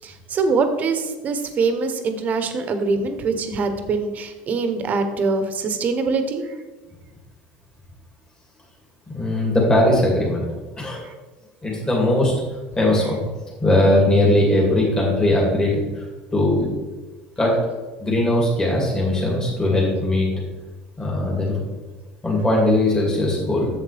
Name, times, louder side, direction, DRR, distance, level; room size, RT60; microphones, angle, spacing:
voice 1, 0.0-6.5 11.0-11.1, right 4 dB, 40° right, 8 dB, 0.9 m, -23 dB
voice 2, 9.1-10.5 10.8-11.0 11.6-12.3 12.8-13.1 13.6-15.7 16.3-16.7 17.4-17.5 18.0-20.3 21.0-21.6 22.2-23.7, left 1 dB, 20° left, -3 dB, 2.4 m, -19 dB
7.4 x 7.2 x 3.4 m, 1.2 s
supercardioid pair, 105°, 4 cm